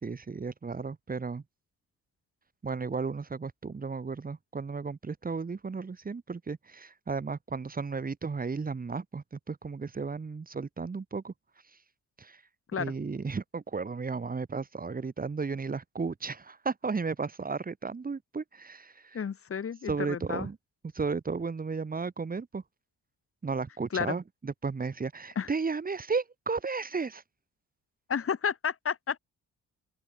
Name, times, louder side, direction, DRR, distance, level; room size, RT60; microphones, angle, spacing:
voice 1, 0.0-1.4 2.6-11.3 12.2-12.4 12.8-19.2 19.9-20.6 20.9-22.6 23.4-27.2, right 4 dB, 30° right, 2.5 m, -34 dB
voice 2, 19.1-20.5 23.9-24.2 25.4-25.5 28.1-29.2, left 7 dB, 45° left, 5.4 m, -31 dB
open air
cardioid pair, 90°, 30 cm